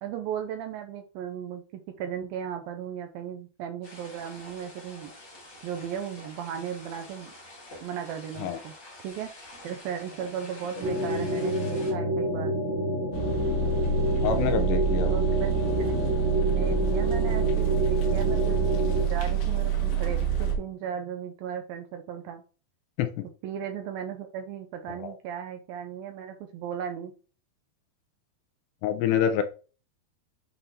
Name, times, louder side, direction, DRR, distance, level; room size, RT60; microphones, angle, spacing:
voice 1, 0.0-5.1 5.6-7.3 7.8-8.7 9.0-9.3 9.6-12.6 15.1-15.5 15.8-15.9 16.5-22.4 23.4-27.1, right 8 dB, 80° right, 6 dB, 2.1 m, -36 dB
sound 1, 3.8-11.9, left 1 dB, 30° left, 2.5 m, -47 dB
sound 2, 10.8-19.0, equal, 55° right, 2.0 m, -28 dB
sound 3, 13.1-20.6, right 7 dB, 70° left, 3.0 m, -26 dB
voice 2, 14.2-15.1 23.0-23.1 25.0-25.1 28.8-29.4, left 8 dB, 85° left, 8 dB, 3.1 m, -26 dB
8.2 x 5.5 x 3.0 m, 0.36 s
omnidirectional pair, 4.9 m